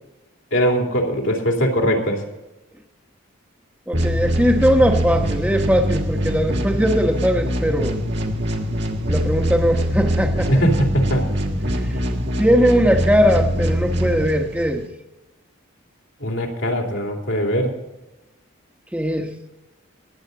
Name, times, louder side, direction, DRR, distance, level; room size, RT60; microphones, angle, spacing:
voice 1, 0.5-2.2 10.5-11.2 16.2-17.7, equal, 65° left, 1 dB, 2.8 m, -20 dB
voice 2, 3.9-8.0 9.1-10.5 11.6-11.7 12.4-14.8 18.9-19.3, equal, 5° right, 4 dB, 1.2 m, -19 dB
sound 1, 3.9-14.9, equal, 55° right, 1.7 m, -23 dB
21.5 x 8.3 x 3.9 m, 1.0 s
head